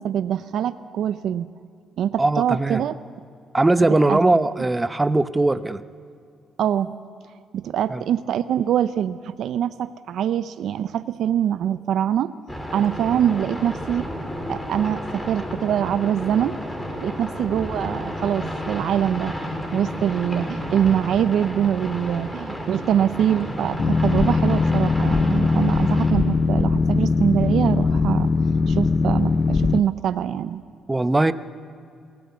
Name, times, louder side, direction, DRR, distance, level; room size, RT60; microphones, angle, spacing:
voice 1, 0.0-1.5 2.0-3.0 4.1-4.2 6.6-6.9 7.5-12.3 12.7-14.1 14.5-16.6 17.0-19.4 19.7-28.3 28.7-30.6, right 9 dB, 75° right, 13 dB, 0.6 m, -24 dB
voice 2, 2.2-2.8 3.5-5.8 7.9-8.0 30.9-31.3, right 2 dB, 15° right, 13 dB, 0.8 m, -20 dB
sound 1, 12.5-26.1, equal, 10° left, 3.9 m, -32 dB
Boat Water vehicle, 23.8-29.8, left 4 dB, 35° left, 0.4 m, -20 dB
21.5 x 16.5 x 9.6 m, 2.5 s
cardioid pair, 90°, 0 cm